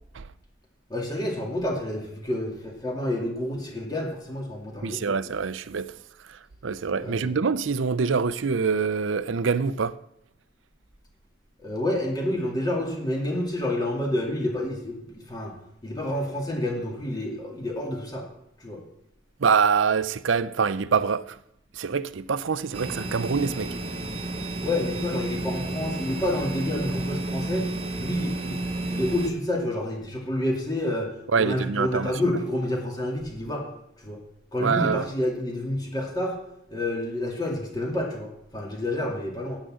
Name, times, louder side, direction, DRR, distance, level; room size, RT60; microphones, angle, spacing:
voice 1, 0.9-5.1 7.0-7.3 11.6-15.5 15.8-18.2 18.6-18.8 24.6-27.7 28.0-33.6 34.0-34.2 34.5-36.4 36.7-39.6, left 1 dB, 20° left, 2.5 m, -29 dB
voice 2, 4.8-5.9 6.3-9.9 19.4-21.4 21.8-23.8 31.3-32.1 34.6-35.1, right 5 dB, 75° right, 0.6 m, -25 dB
sound 1, 22.7-29.3, right 2 dB, 30° right, 1.2 m, -31 dB
10.0 x 8.3 x 7.6 m
head